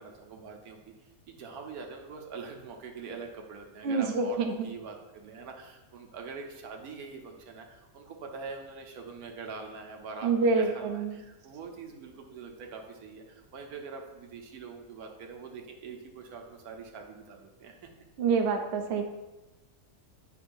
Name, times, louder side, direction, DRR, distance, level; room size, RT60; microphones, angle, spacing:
voice 1, 0.0-17.8, right 4 dB, 80° right, 3 dB, 1.3 m, -44 dB
voice 2, 3.8-4.7 10.2-11.2 18.2-19.0, right 4 dB, 55° right, 3 dB, 0.8 m, -27 dB
8.4 x 5.4 x 2.6 m, 1.1 s
omnidirectional pair, 1.6 m